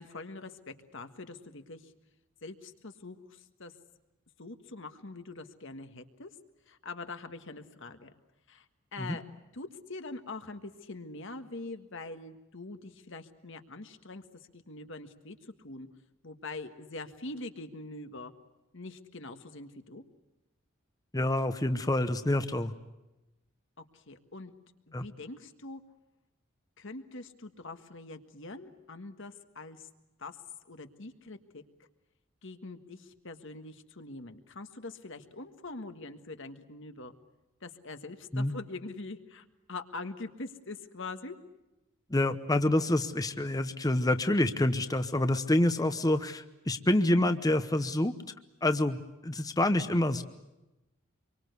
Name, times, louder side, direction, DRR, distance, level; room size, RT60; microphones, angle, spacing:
voice 1, 0.0-1.9 2.4-3.7 4.4-6.3 6.7-8.1 8.5-8.7 8.9-9.2 9.5-14.2 14.5-15.9 16.2-18.3 18.7-20.0 23.8-24.5 24.9-25.8 26.8-29.9 30.2-30.4 30.7-31.6 32.4-37.1 37.6-41.4, left 3 dB, 65° left, 7 dB, 1.7 m, -43 dB
voice 2, 21.1-22.7 24.9-25.0 38.3-38.5 42.1-48.1 48.6-49.0 49.2-50.2, left 1 dB, 15° left, 9 dB, 0.9 m, -27 dB
27.0 x 24.0 x 8.2 m, 0.99 s
head